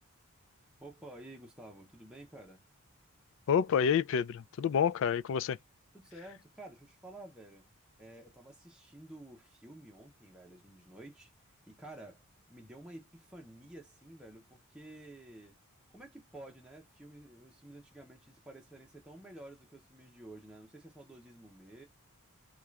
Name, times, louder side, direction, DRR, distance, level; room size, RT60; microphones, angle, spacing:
voice 1, 0.8-2.6 5.9-7.7 8.0-12.2 12.5-15.6 15.9-21.8, right 1 dB, 5° right, 0.7 m, -51 dB
voice 2, 3.5-5.6, left 7 dB, 60° left, 0.3 m, -28 dB
3.7 x 2.3 x 3.0 m
head